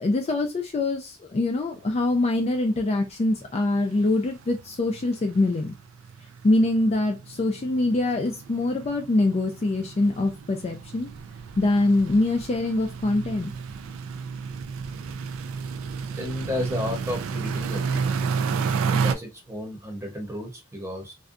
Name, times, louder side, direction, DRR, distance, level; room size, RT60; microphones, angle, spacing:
voice 1, 0.0-5.7 6.4-11.1 11.6-13.5, left 2 dB, 30° left, 0.3 m, -24 dB
sound 1, 2.0-2.1 2.4-2.6 2.9-3.0 3.3-19.1, right 5 dB, 70° right, 0.3 m, -32 dB
voice 2, 16.2-18.1 18.9-21.1, left 1 dB, 15° right, 0.8 m, -32 dB
2.5 x 2.2 x 2.5 m
head